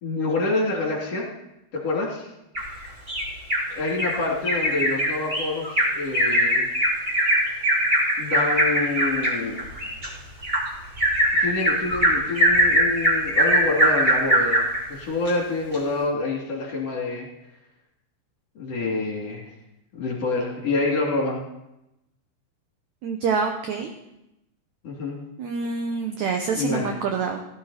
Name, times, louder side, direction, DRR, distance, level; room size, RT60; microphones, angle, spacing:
voice 1, 0.0-1.3 1.7-2.3 3.7-6.7 8.2-9.6 11.4-14.6 14.9-17.3 18.6-19.5 19.9-21.4 24.8-25.2 26.5-27.0, left 3 dB, 40° left, -2 dB, 3.7 m, -27 dB
Bird vocalization bird call bird song, 2.5-3.6 4.0-4.2 4.4-14.8 15.3-15.4 15.7-15.8, equal, 15° right, 2.9 m, -21 dB
voice 2, 23.0-23.9 25.4-27.4, right 5 dB, 85° right, 4 dB, 1.6 m, -26 dB
16.5 x 11.5 x 4.2 m, 0.88 s
omnidirectional pair, 4.6 m